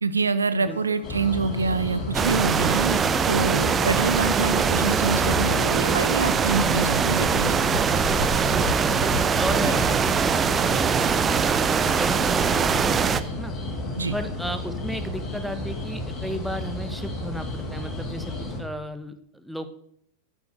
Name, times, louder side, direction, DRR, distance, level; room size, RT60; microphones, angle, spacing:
voice 1, 0.0-7.8 9.6-9.7 14.0-14.1, right 4 dB, 75° right, 14 dB, 0.6 m, -26 dB
sound 1, 0.6-9.3, left 2 dB, 70° left, 1.5 m, -38 dB
sound 2, 1.0-18.6, left 2 dB, 30° left, 3.7 m, -32 dB
sound 3, 2.1-13.2, right 6 dB, 20° right, 0.7 m, -22 dB
voice 2, 9.4-13.5 14.1-18.3 18.6-19.7, equal, ahead, 9 dB, 1.3 m, -34 dB
11.5 x 7.3 x 6.5 m, 0.67 s
figure-of-eight pair, 90°, 0 cm